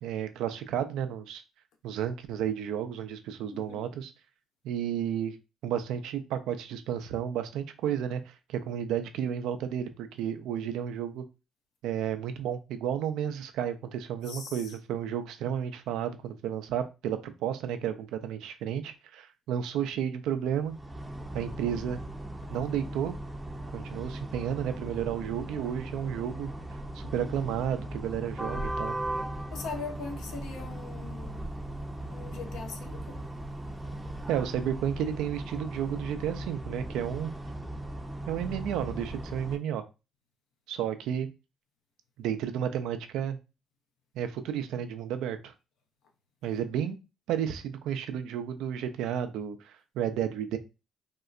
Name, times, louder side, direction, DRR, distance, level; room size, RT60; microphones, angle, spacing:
voice 1, 0.0-1.4 1.8-4.1 4.6-5.4 5.6-11.2 11.8-20.7 21.3-22.0 22.5-23.1 23.7-26.5 26.9-29.0 34.3-37.3 38.3-39.8 40.7-41.3 42.2-43.4 44.1-45.5 46.4-47.0 47.3-50.6, right 9 dB, 80° right, 0.4 m, -32 dB
sound 1, 20.5-39.6, right 1 dB, 10° right, 0.5 m, -38 dB
voice 2, 29.5-31.4 32.1-33.2, left 4 dB, 75° left, 0.6 m, -40 dB
3.6 x 2.1 x 2.4 m
supercardioid pair, 75°, 0 cm